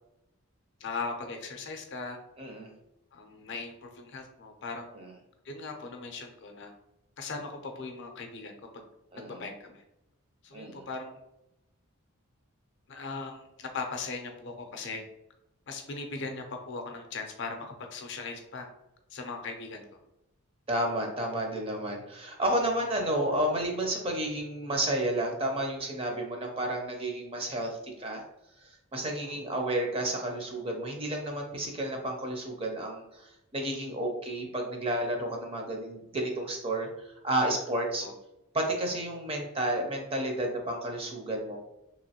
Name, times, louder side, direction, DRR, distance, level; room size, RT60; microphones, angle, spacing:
voice 1, 0.8-2.2 3.1-5.0 5.4-6.7 7.2-8.8 9.2-9.8 10.4-11.2 12.9-15.0 15.7-18.7 19.1-19.8 29.2-29.3 38.0-38.1, left 4 dB, 55° left, 4 dB, 0.5 m, -39 dB
voice 2, 2.4-2.7 4.9-5.1 9.1-9.4 10.5-10.9 20.7-28.2 28.6-38.1 38.5-41.6, right 1 dB, 25° right, 2 dB, 0.5 m, -31 dB
3.0 x 2.9 x 2.8 m, 0.87 s
head